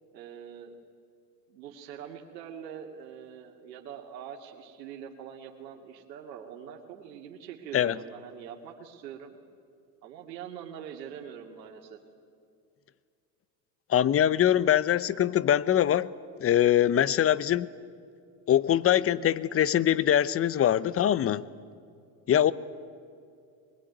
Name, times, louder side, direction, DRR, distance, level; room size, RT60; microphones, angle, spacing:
voice 1, 0.1-0.8 1.5-9.3 10.0-12.0 22.3-22.5, right 8 dB, 85° right, 1 dB, 2.5 m, -44 dB
voice 2, 13.9-16.1 16.4-17.7 18.5-21.4 22.3-22.5, left 11 dB, 30° left, 18 dB, 0.8 m, -23 dB
22.5 x 21.0 x 9.4 m, 2.3 s
supercardioid pair, 95°, 49 cm